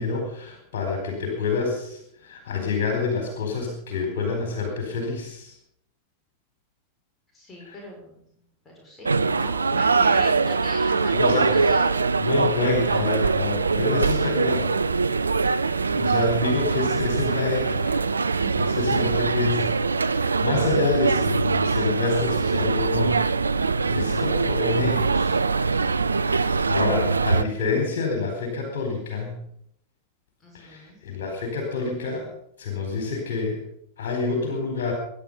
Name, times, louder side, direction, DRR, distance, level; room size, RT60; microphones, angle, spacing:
voice 1, 0.0-5.5 7.6-7.7 11.1-11.6 12.2-14.7 15.4-18.0 18.6-19.7 20.0-23.2 23.9-25.3 26.3-29.4 30.5-32.3 32.6-33.6 34.0-34.9, left 4 dB, 55° left, 3 dB, 4.4 m, -27 dB
voice 2, 7.3-8.4 8.6-13.1 18.3-19.0 23.5-24.1 30.4-31.0, left 1 dB, 15° left, -2 dB, 6.2 m, -40 dB
sound 1, 9.1-27.4, right 4 dB, 75° right, 0.6 m, -23 dB
24.0 x 10.5 x 5.6 m, 0.71 s
figure-of-eight pair, 90°, 0 cm